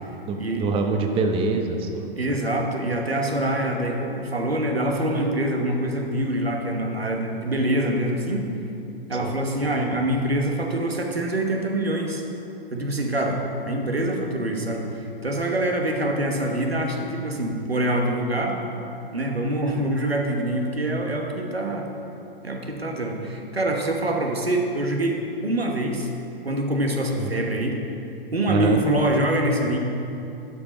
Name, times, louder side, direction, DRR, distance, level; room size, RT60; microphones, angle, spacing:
voice 1, 0.3-2.1 9.2-9.3 27.2-27.3 28.5-28.8, right 4 dB, 20° right, 4 dB, 0.6 m, -25 dB
voice 2, 2.2-8.5 9.1-12.2 12.7-18.6 19.1-21.9 22.4-26.1 26.4-27.8 28.3-29.8, right 1 dB, 90° right, 2 dB, 1.2 m, -25 dB
12.0 x 5.1 x 5.2 m, 2.8 s
figure-of-eight pair, 105°, 30 cm